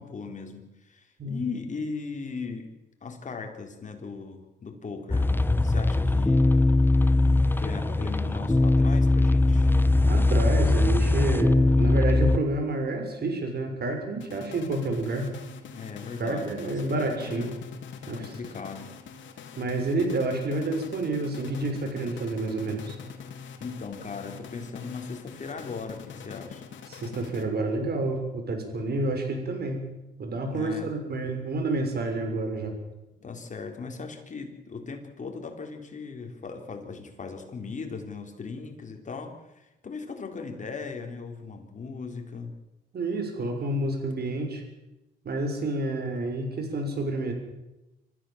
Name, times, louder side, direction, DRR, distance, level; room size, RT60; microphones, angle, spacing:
voice 1, 0.0-2.7 3.0-5.3 5.6-6.5 7.6-9.7 15.7-17.0 17.3-17.5 18.1-18.9 23.6-26.6 30.5-30.9 33.2-42.5, left 4 dB, 40° left, 4 dB, 4.2 m, -38 dB
sound 1, 5.1-12.4, left 2 dB, 10° left, 1.0 m, -21 dB
voice 2, 10.1-15.3 16.2-17.5 18.1-18.3 19.6-23.0 26.9-29.8 30.2-32.7 42.9-44.6 45.2-47.3, right 2 dB, 55° right, 5 dB, 6.3 m, -29 dB
sound 2, 14.2-27.8, left 6 dB, 70° left, 2.9 m, -44 dB
26.5 x 15.0 x 7.4 m, 0.96 s
cardioid pair, 90°, 20 cm